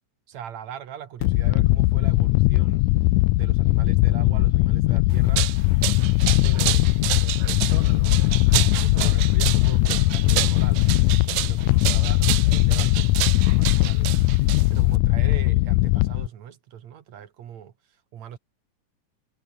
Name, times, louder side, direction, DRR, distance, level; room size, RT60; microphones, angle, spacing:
voice 1, 0.3-2.9 3.3-5.5 6.4-10.8 11.2-14.4 14.7-18.4, right 9 dB, 65° right, 2.8 m, -41 dB
sound 1, 1.2-16.3, left 19 dB, 80° left, 2.0 m, -20 dB
sound 2, 5.1-15.0, right 18 dB, 80° right, 1.6 m, -29 dB
omnidirectional pair, 3.6 m